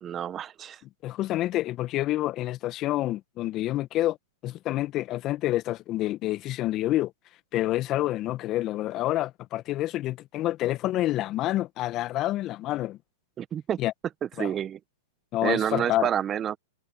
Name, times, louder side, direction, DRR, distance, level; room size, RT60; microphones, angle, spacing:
voice 1, 0.0-0.8 13.4-13.8 14.2-14.8 15.4-16.6, right 9 dB, 25° right, 1.4 m, -29 dB
voice 2, 1.0-4.2 4.4-7.1 7.5-13.0 13.8-13.9 14.4-14.5 15.3-16.1, left 15 dB, 35° left, 1.7 m, -28 dB
hypercardioid pair, 110°, 0 cm